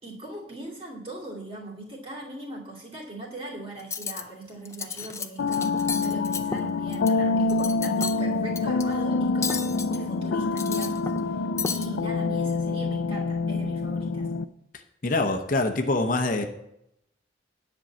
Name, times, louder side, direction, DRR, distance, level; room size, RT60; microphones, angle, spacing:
voice 1, 0.0-14.3, right 2 dB, 30° right, -2 dB, 2.7 m, -40 dB
Cutlery silverware, 3.8-4.2 4.7-5.3 5.5-7.1 7.5-8.2 8.6-8.8 9.4-10.0 10.4-11.3 11.6-11.9, left 5 dB, 15° left, 0.4 m, -32 dB
sound 1, 5.4-14.5, left 3 dB, 85° left, 0.4 m, -26 dB
voice 2, 15.0-16.5, left 2 dB, 45° left, 5 dB, 0.7 m, -24 dB
10.5 x 5.3 x 7.4 m, 0.82 s
head